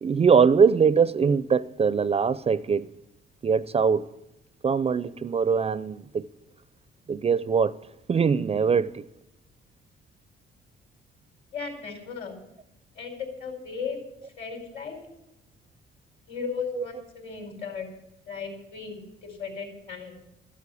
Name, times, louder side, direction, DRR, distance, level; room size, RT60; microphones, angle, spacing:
voice 1, 0.0-2.9 3.4-4.1 4.6-6.2 7.1-7.8 8.1-9.0 16.8-16.9, right 6 dB, 30° right, 0.4 m, -22 dB
voice 2, 11.5-12.3 12.9-14.0 14.4-15.0 16.3-17.9 18.3-20.1, left 5 dB, 60° left, 4.6 m, -36 dB
13.5 x 8.5 x 8.3 m
cardioid pair, 90°, 20 cm